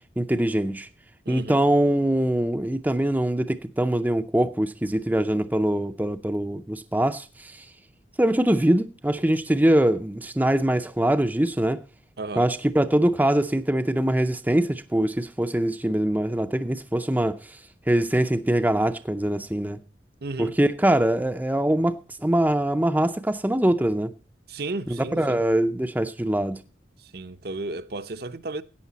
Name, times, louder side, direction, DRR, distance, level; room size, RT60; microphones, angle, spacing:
voice 1, 0.2-0.9 1.3-7.6 8.2-11.8 12.4-17.6 17.9-19.8 20.4-24.1 24.9-26.6, right 1 dB, 10° right, 0.5 m, -23 dB
voice 2, 1.3-1.6 12.2-12.5 20.2-20.6 24.5-25.4 27.1-28.6, right 2 dB, 55° right, 0.7 m, -33 dB
14.0 x 9.1 x 4.0 m
head